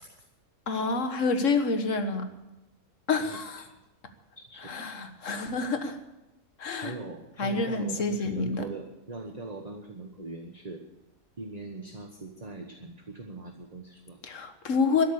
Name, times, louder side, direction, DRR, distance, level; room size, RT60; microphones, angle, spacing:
voice 1, 0.7-2.2 3.1-3.6 4.7-6.0 6.6-6.9 7.4-8.6 14.2-15.0, left 4 dB, 60° left, 7 dB, 1.7 m, -28 dB
voice 2, 3.2-3.7 4.4-4.7 6.8-10.8 11.4-14.2, right 2 dB, 30° right, 4 dB, 1.2 m, -41 dB
13.0 x 10.0 x 8.6 m, 0.97 s
omnidirectional pair, 1.5 m